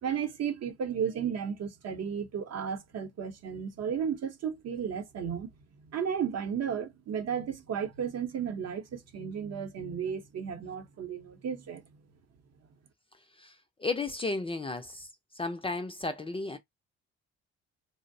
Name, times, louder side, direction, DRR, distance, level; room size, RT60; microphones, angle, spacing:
voice 1, 0.0-5.5 5.9-11.8, right 7 dB, 55° right, 0.7 m, -34 dB
voice 2, 13.4-15.1 15.3-16.6, left 3 dB, 20° left, 0.4 m, -34 dB
2.6 x 2.0 x 2.6 m
cardioid pair, 90°, 30 cm